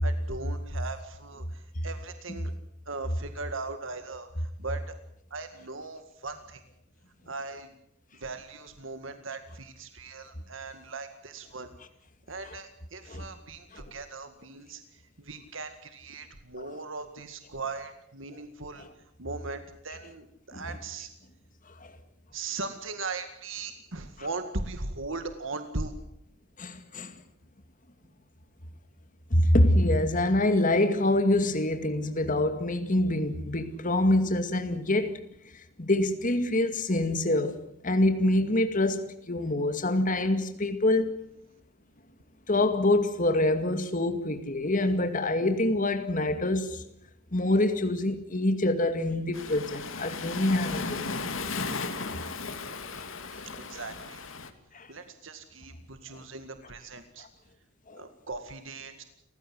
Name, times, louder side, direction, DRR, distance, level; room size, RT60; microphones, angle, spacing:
voice 1, 0.0-2.5 2.9-4.9 5.3-6.6 7.3-7.7 8.2-11.7 12.3-18.9 19.2-21.1 22.3-26.0 53.3-54.2 54.9-57.3 57.9-59.0, right 3 dB, 65° right, 2.0 m, -39 dB
voice 2, 26.6-27.1 29.3-35.2 35.5-37.6 37.8-41.1 42.5-46.8 47.3-51.2 53.0-53.1 54.7-54.9 56.1-56.2 57.2-57.3 57.9-58.0, left 1 dB, 40° left, 2.2 m, -26 dB
Waves surf, 49.3-54.5, left 4 dB, 70° left, 2.4 m, -35 dB
30.0 x 15.5 x 7.9 m
head